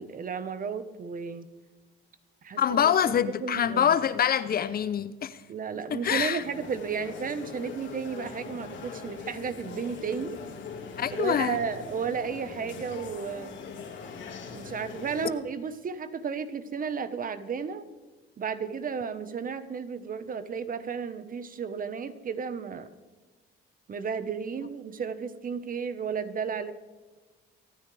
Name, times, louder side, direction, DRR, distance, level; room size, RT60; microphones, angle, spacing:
voice 1, 0.0-1.5 2.4-4.0 5.5-10.4 11.1-13.6 14.5-17.8 18.4-22.9 23.9-26.7, right 6 dB, 40° right, 1.2 m, -33 dB
voice 2, 2.6-5.4 5.9-6.4 11.0-11.6, left 9 dB, 45° left, 0.7 m, -25 dB
sound 1, 6.4-15.3, left 5 dB, 65° left, 3.1 m, -42 dB
25.5 x 9.7 x 3.4 m
cardioid pair, 95°, 21 cm